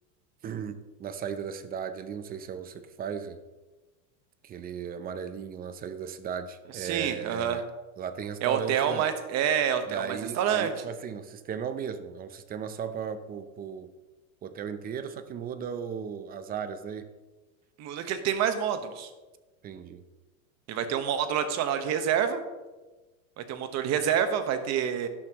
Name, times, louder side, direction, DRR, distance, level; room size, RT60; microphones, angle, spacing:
voice 1, 0.4-3.4 4.4-7.6 8.0-9.1 9.8-13.9 14.4-17.1 19.6-20.0, right 7 dB, 20° right, 11 dB, 0.6 m, -36 dB
voice 2, 6.7-7.6 8.4-10.9 17.8-19.1 20.7-22.4 23.4-25.1, right 8 dB, 40° right, 8 dB, 1.2 m, -27 dB
12.5 x 11.5 x 3.0 m, 1.2 s
supercardioid pair, 140°, 42 cm